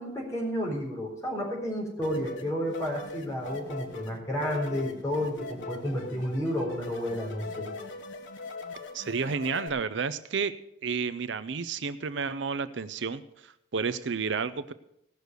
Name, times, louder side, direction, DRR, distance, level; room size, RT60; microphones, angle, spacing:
voice 1, 0.0-7.7, equal, 15° left, -3 dB, 4.1 m, -31 dB
sound 1, 2.0-9.7, left 3 dB, 85° left, 1.3 m, -41 dB
voice 2, 8.9-10.5 10.8-14.7, right 5 dB, 75° right, 13 dB, 0.6 m, -31 dB
17.0 x 6.5 x 6.7 m, 0.78 s
head